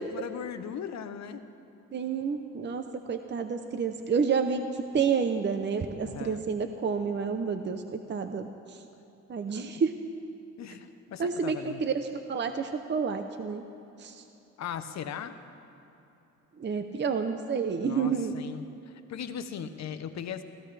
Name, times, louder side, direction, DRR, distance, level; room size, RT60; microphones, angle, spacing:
voice 1, 0.0-1.4 6.0-6.4 9.5-9.7 10.6-11.8 14.6-15.4 17.8-20.4, left 8 dB, 65° left, 10 dB, 0.9 m, -38 dB
voice 2, 1.9-4.6 4.9-8.8 9.3-9.9 11.2-13.6 14.0-14.2 16.6-18.4, right 6 dB, 35° right, 7 dB, 0.8 m, -29 dB
24.0 x 16.5 x 3.4 m, 3.0 s
cardioid pair, 90°, 30 cm